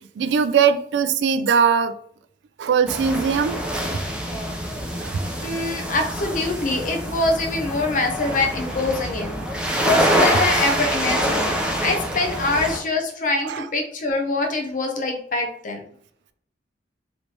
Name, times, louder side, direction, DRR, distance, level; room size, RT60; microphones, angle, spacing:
voice 1, 0.2-1.9 2.6-3.6 5.0-5.2 13.5-13.6, right 6 dB, 70° right, 0.3 m, -20 dB
sound 1, 2.9-12.8, equal, 5° right, 0.5 m, -25 dB
voice 2, 5.4-11.5 11.8-15.8, left 2 dB, 50° left, 0.7 m, -24 dB
3.2 x 3.0 x 2.8 m
head